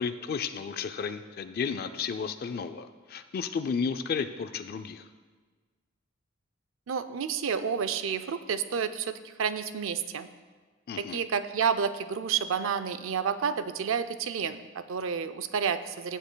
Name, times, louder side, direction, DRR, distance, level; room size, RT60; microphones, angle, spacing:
voice 1, 0.0-5.1 10.9-11.2, left 6 dB, 50° left, 10 dB, 0.3 m, -33 dB
voice 2, 6.9-10.3 11.0-16.2, right 6 dB, 75° right, 12 dB, 0.5 m, -30 dB
15.5 x 7.4 x 2.2 m, 1.4 s
head